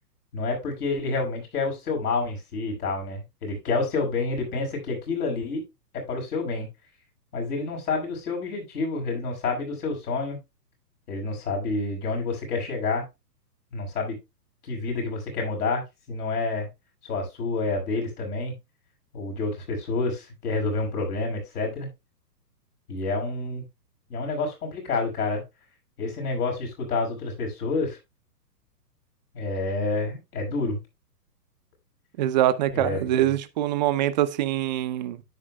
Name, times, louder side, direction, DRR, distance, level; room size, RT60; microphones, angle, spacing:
voice 1, 0.3-5.6 5.9-6.7 7.3-10.4 11.1-13.0 13.7-14.2 14.6-15.8 16.1-16.7 17.1-18.5 19.1-21.9 22.9-23.6 24.1-25.4 26.0-28.0 29.3-30.8 32.7-33.0, left 3 dB, 65° left, 6.2 m, -28 dB
voice 2, 32.2-35.2, right 12 dB, 25° right, 0.6 m, -24 dB
10.0 x 8.5 x 2.2 m
hypercardioid pair, 130°, 50 cm